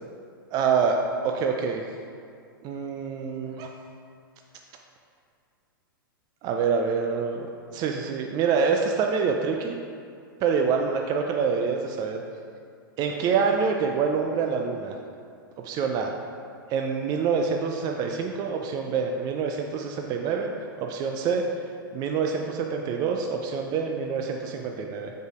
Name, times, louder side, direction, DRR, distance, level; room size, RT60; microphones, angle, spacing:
voice 1, 0.5-1.0 1.2-1.9 2.6-3.7 6.4-7.5 7.7-9.8 10.4-12.2 13.0-14.9 15.6-16.1 16.7-20.5 20.8-21.4 21.9-25.1, right 5 dB, 35° right, 2 dB, 0.5 m, -26 dB
6.6 x 4.7 x 4.9 m, 2.3 s
hypercardioid pair, 110°, 12 cm